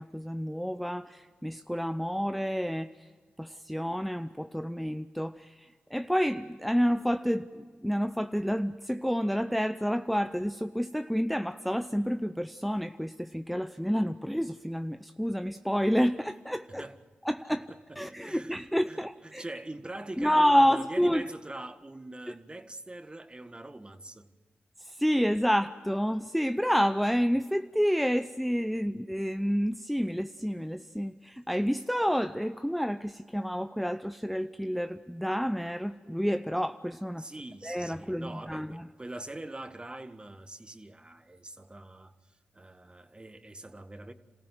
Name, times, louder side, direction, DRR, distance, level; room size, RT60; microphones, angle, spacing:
voice 1, 0.0-3.1 3.4-16.8 17.2-17.6 18.0-19.4 20.2-21.3 22.3-22.4 24.8-37.3 37.6-38.9, equal, ahead, 0.7 m, -29 dB
voice 2, 17.5-24.3 37.2-44.1, right 2 dB, 25° right, 1.8 m, -43 dB
27.5 x 15.5 x 7.9 m
supercardioid pair, 40°, 4 cm